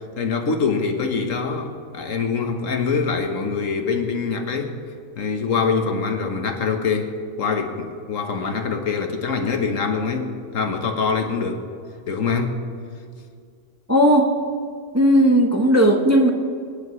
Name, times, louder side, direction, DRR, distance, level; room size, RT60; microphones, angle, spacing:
voice 1, 0.2-4.8 5.2-11.6 12.1-12.6, left 5 dB, 70° left, 5 dB, 1.5 m, -24 dB
voice 2, 13.9-14.3 14.9-16.3, equal, 15° right, 2 dB, 0.9 m, -16 dB
26.0 x 10.5 x 3.2 m, 2.2 s
omnidirectional pair, 1.4 m